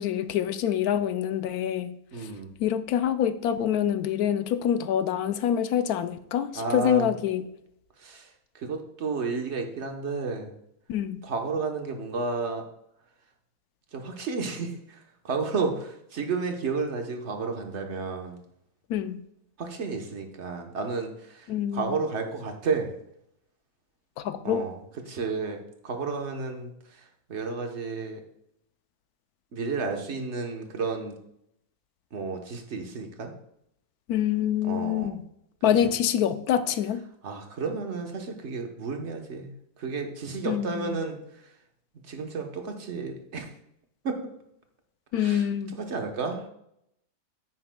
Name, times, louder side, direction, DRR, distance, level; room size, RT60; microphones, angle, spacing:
voice 1, 0.0-2.0 2.6-7.5 10.9-11.2 18.9-19.2 21.5-21.9 24.2-24.6 34.1-35.2 35.6-37.0 40.4-41.0 45.1-45.8, left 9 dB, 85° left, 11 dB, 1.1 m, -26 dB
voice 2, 2.1-2.5 6.5-7.1 8.0-8.3 8.5-10.5 11.2-12.6 13.9-15.0 15.2-18.4 19.6-22.9 24.4-24.8 25.1-26.7 27.3-28.2 29.5-31.1 32.1-33.3 34.6-35.2 37.2-39.5 39.8-41.2 42.1-43.5 44.0-44.3 45.1-45.4 45.8-46.5, right 4 dB, 50° right, 4 dB, 1.3 m, -32 dB
9.7 x 9.1 x 2.3 m, 0.76 s
omnidirectional pair, 1.5 m